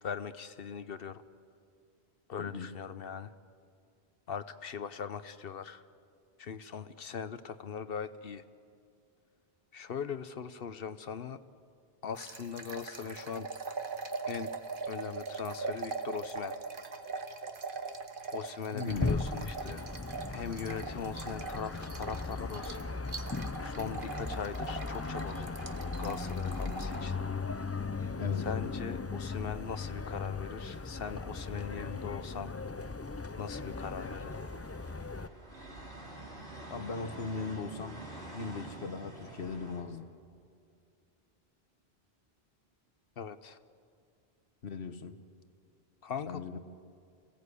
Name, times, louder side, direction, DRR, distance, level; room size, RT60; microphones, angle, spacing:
voice 1, 0.0-1.2 2.3-3.3 4.3-5.8 6.4-8.4 9.7-11.4 12.0-13.5 14.3-14.5 14.9-16.6 18.3-19.8 20.3-22.9 23.6-25.6 26.0-27.2 28.4-32.5 33.4-34.5 43.2-43.6 46.0-46.4, left 6 dB, 65° left, 12 dB, 1.0 m, -40 dB
voice 2, 2.4-2.7 18.7-19.1 28.2-28.5 36.7-38.0 38.3-40.1 44.6-45.2 46.3-46.6, left 4 dB, 85° left, 9 dB, 1.5 m, -38 dB
sound 1, 12.2-27.0, right 4 dB, 55° right, 1.3 m, -41 dB
sound 2, 18.9-35.3, left 4 dB, 25° left, 0.3 m, -37 dB
sound 3, 33.5-39.8, right 1 dB, 85° right, 3.8 m, -47 dB
27.0 x 17.5 x 8.3 m, 2.3 s
omnidirectional pair, 1.1 m